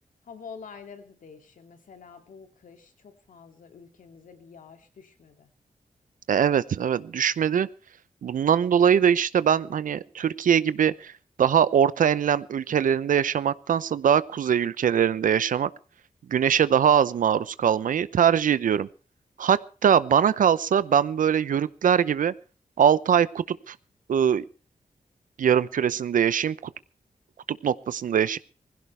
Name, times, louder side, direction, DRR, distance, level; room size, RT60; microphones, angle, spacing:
voice 1, 0.2-5.5, left 6 dB, 85° left, 6 dB, 2.6 m, -47 dB
voice 2, 6.3-7.7 8.2-11.1 11.4-15.7 16.3-18.9 19.4-22.3 22.8-23.7 24.1-24.4 25.4-26.5 27.5-28.4, right 8 dB, 85° right, 17 dB, 0.7 m, -22 dB
20.5 x 16.0 x 3.4 m, 0.36 s
wide cardioid pair, 140°, 13 cm